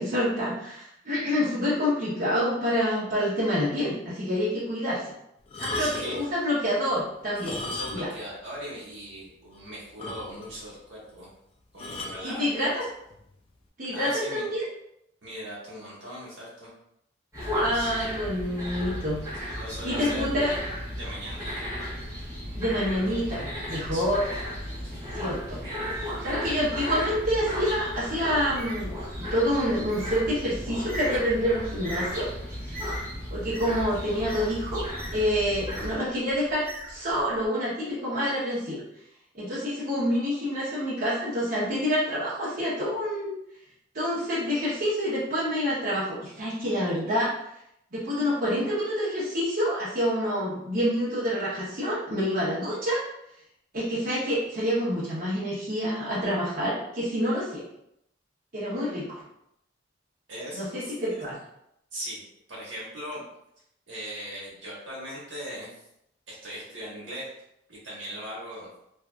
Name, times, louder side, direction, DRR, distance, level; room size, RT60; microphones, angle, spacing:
voice 1, 0.0-5.0 5.6-7.6 7.9-8.1 12.2-12.8 13.8-14.6 17.6-19.2 19.8-20.5 22.5-24.2 25.1-25.6 25.9-28.9 29.2-32.3 32.6-32.9 33.3-34.8 35.1-38.8 39.3-43.3 43.9-47.4 47.9-53.0 53.7-57.6 58.5-59.2 60.5-61.3, equal, 45° right, -10 dB, 0.9 m, -27 dB
sound 1, 5.5-6.3 7.3-8.3 8.5-8.6 9.2-9.3 9.5-9.6 10.0-10.6 11.8-12.3 13.1-13.3, left 2 dB, 30° left, 0.3 m, -36 dB
voice 2, 5.8-6.1 7.6-11.3 11.7-12.7 13.9-14.4 15.2-16.7 17.7-18.0 19.3-20.3 20.9-21.5 23.9-24.0 24.8-25.1 60.3-61.2 61.9-62.2 62.5-63.2 63.9-65.8 66.3-67.3 67.7-68.7, equal, 75° right, -6 dB, 1.1 m, -39 dB
sound 2, 17.3-36.0, equal, 15° right, 1.0 m, -34 dB
Bird, 28.4-37.5, equal, 10° left, 0.7 m, -44 dB
2.6 x 2.5 x 2.2 m, 0.78 s
head